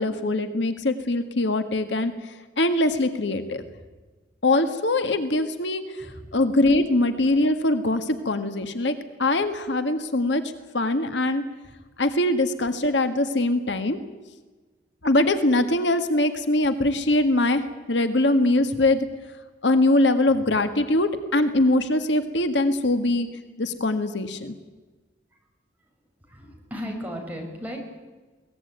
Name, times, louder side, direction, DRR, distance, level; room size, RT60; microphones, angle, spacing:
voice 1, 0.0-2.1 2.6-3.6 4.4-6.1 6.3-8.9 9.2-10.4 10.7-11.4 12.0-14.0 15.0-19.0 19.6-23.3 23.6-24.5, left 2 dB, 70° left, 8 dB, 1.7 m, -22 dB
voice 2, 26.3-27.8, equal, 10° right, 1 dB, 5.8 m, -36 dB
22.0 x 18.5 x 9.3 m, 1.3 s
head